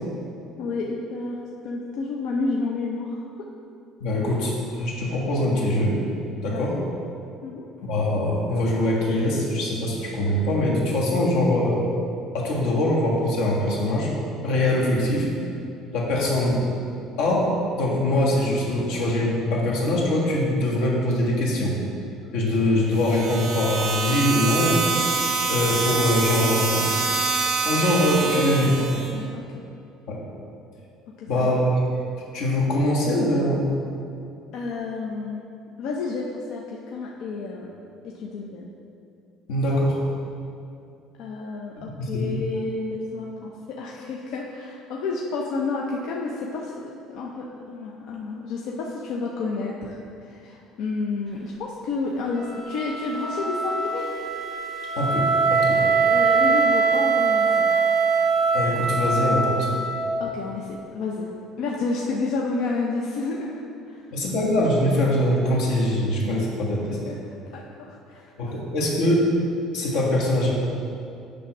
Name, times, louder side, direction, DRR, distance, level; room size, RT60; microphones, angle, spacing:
voice 1, 0.6-3.2 6.4-6.8 7.4-7.6 28.2-29.6 31.1-31.5 34.5-35.4 35.8-37.8 38.0-38.7 41.2-50.0 50.2-54.1 56.0-57.7 60.2-61.3 61.6-64.0 66.9-67.2 67.5-68.3, left 3 dB, 60° left, -2 dB, 0.6 m, -30 dB
voice 2, 4.0-6.0 6.4-6.7 7.8-11.8 12.3-14.1 14.4-15.3 15.9-16.6 17.2-17.5 17.7-21.7 22.3-24.8 25.4-26.9 27.6-28.7 30.1-30.2 31.2-31.8 32.3-33.7 39.5-40.0 42.0-42.3 55.0-55.8 58.5-59.7 64.1-67.0 68.4-69.3 69.7-70.5, left 1 dB, 85° left, -3 dB, 1.7 m, -23 dB
sound 1, 22.9-29.1, right 4 dB, 45° right, 1.2 m, -25 dB
Wind instrument woodwind instrument, 52.3-60.4, right 4 dB, 15° right, 0.6 m, -22 dB
8.4 x 3.6 x 6.0 m, 2.6 s
cardioid pair, 165°, 0 cm